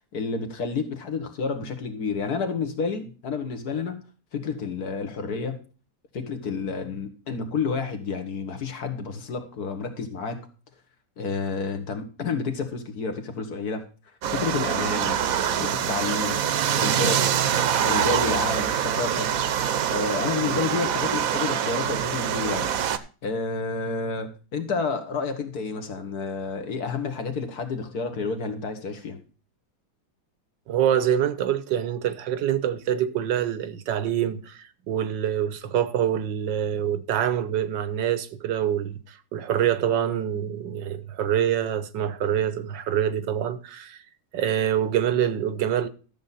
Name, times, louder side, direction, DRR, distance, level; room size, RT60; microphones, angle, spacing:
voice 1, 0.1-4.0 4.3-5.6 6.1-10.5 11.2-13.9 14.3-15.2 15.6-16.4 16.8-17.4 17.6-19.3 19.9-29.2, left 4 dB, 60° left, 1.9 m, -30 dB
sound 1, 14.2-23.0, right 9 dB, 60° right, 1.0 m, -25 dB
voice 2, 30.7-44.0 44.3-45.9, right 10 dB, 90° right, 1.5 m, -25 dB
12.5 x 7.2 x 4.1 m
omnidirectional pair, 1.9 m